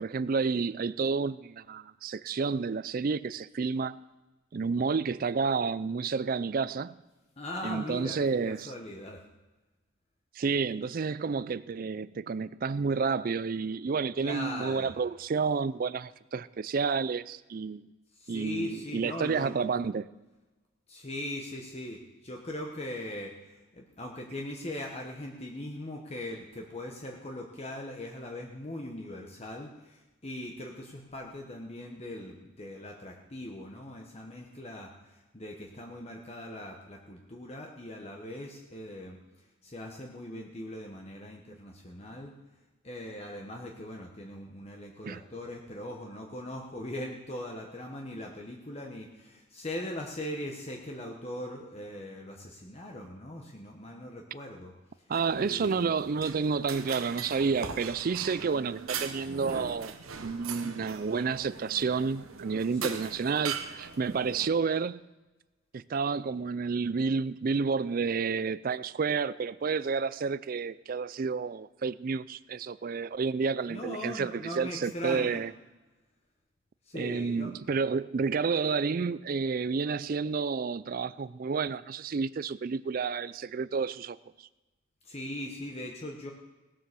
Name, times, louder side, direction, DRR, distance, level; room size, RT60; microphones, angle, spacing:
voice 1, 0.0-4.0 4.5-6.9 7.6-8.7 10.4-17.8 18.3-20.1 45.0-45.2 55.1-59.9 60.2-65.0 65.7-75.5 76.9-84.2, right 5 dB, 45° right, 0.4 m, -30 dB
voice 2, 7.4-9.2 14.2-14.9 18.1-19.6 20.9-42.3 42.8-55.9 60.6-60.9 62.7-63.0 73.7-75.4 76.8-77.5 85.0-86.3, left 1 dB, 30° left, 1.1 m, -40 dB
sound 1, 55.1-64.5, right 6 dB, 90° right, 1.1 m, -40 dB
18.5 x 7.6 x 6.8 m
head